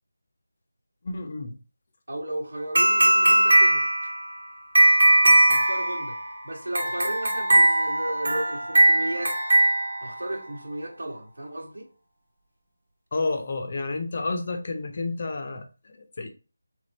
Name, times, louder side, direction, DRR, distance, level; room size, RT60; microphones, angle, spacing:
voice 1, 1.0-1.5 13.1-16.3, left 3 dB, 30° left, 0.5 m, -30 dB
voice 2, 2.1-4.1 5.5-6.2 6.4-9.4 10.0-11.9, right 1 dB, 80° right, 1.4 m, -34 dB
sound 1, 2.7-10.4, right 1 dB, 50° right, 1.2 m, -20 dB
3.3 x 3.3 x 4.1 m
figure-of-eight pair, 175°, 0 cm